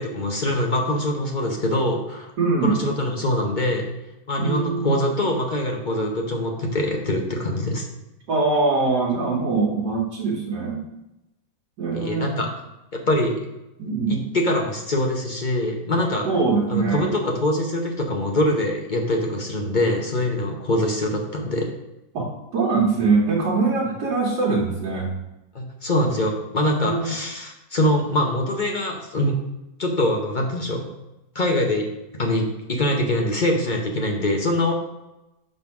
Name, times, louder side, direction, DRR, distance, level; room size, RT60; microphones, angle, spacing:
voice 1, 0.0-2.3 2.6-3.8 4.3-7.9 11.9-12.5 13.1-13.4 14.1-16.3 16.7-21.7 25.5-29.3 29.8-30.9 31.3-31.9 32.1-34.7, left 1 dB, 45° left, 1 dB, 0.6 m, -23 dB
voice 2, 2.4-2.8 4.4-5.0 8.3-10.8 11.8-12.4 13.8-14.2 16.3-17.1 22.1-25.1 26.8-27.1, right 4 dB, 75° right, -5 dB, 1.7 m, -22 dB
5.4 x 4.0 x 5.8 m, 0.93 s
omnidirectional pair, 1.8 m